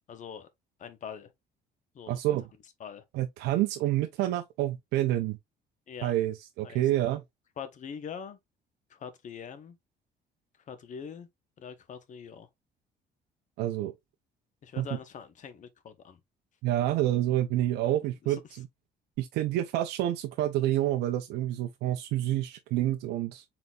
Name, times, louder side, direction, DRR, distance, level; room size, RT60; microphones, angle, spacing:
voice 1, 0.1-0.5 0.8-1.3 1.9-2.2 2.8-3.0 5.9-6.1 6.6-6.8 7.6-8.4 8.9-9.8 10.7-11.3 11.6-12.5 14.6-16.2 17.8-17.9 18.2-18.4, left 7 dB, 45° left, 0.9 m, -43 dB
voice 2, 2.1-2.5 3.1-5.4 6.0-7.2 13.6-13.9 14.8-14.9 16.6-18.7 19.2-23.4, right 13 dB, 85° right, 0.5 m, -28 dB
4.0 x 3.9 x 2.3 m
cardioid pair, 110°, 17 cm